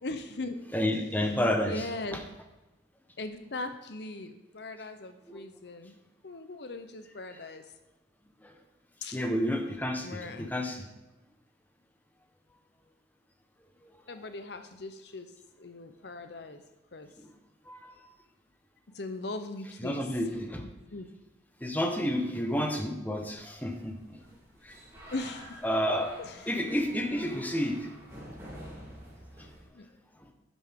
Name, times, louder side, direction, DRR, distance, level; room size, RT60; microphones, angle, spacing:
voice 1, 0.0-0.6 1.7-2.2 3.2-6.0 6.2-7.6 9.0-9.2 10.0-10.5 14.1-15.3 15.6-16.6 16.9-17.1 18.9-20.1 20.9-21.1 25.1-25.6 26.2-26.6 29.7-29.9, left 2 dB, 60° left, 9 dB, 0.8 m, -39 dB
voice 2, 0.7-1.8 5.3-5.4 9.1-10.8 17.7-17.8 19.8-20.6 21.6-23.9 25.6-26.1 26.5-27.8, equal, 10° left, 4 dB, 1.2 m, -30 dB
sound 1, 23.1-29.7, equal, 15° right, 4.5 m, -49 dB
11.0 x 10.5 x 3.8 m, 1.1 s
head